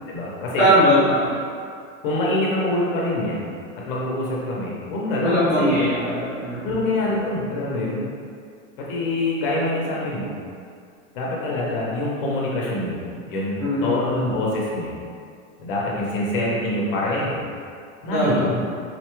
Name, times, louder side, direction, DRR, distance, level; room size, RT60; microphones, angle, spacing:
voice 1, 0.1-0.7 2.0-3.4 3.7-6.0 6.6-8.1 8.8-10.4 11.1-15.0 15.6-17.5 18.0-18.6, left 1 dB, 40° left, -4 dB, 0.6 m, -25 dB
voice 2, 0.6-1.4 5.2-6.8 13.6-14.0 18.1-18.4, equal, 15° right, -11 dB, 0.6 m, -20 dB
4.0 x 2.2 x 3.0 m, 2.3 s
supercardioid pair, 165°, 41 cm